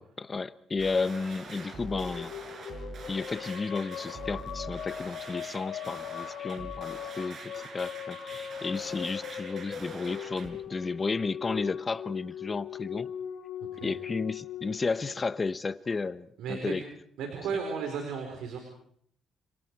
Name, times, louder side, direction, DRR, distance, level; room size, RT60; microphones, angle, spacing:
voice 1, 0.2-2.3 3.1-13.1 13.8-16.8, left 4 dB, 30° left, 1.0 m, -33 dB
sound 1, 0.8-10.5, right 3 dB, 55° right, 5.5 m, -44 dB
sound 2, 1.5-15.9, left 9 dB, 75° left, 2.8 m, -40 dB
voice 2, 16.4-16.8 17.2-18.6, right 5 dB, 85° right, 4.6 m, -34 dB
29.5 x 26.0 x 4.8 m
cardioid pair, 90°, 0 cm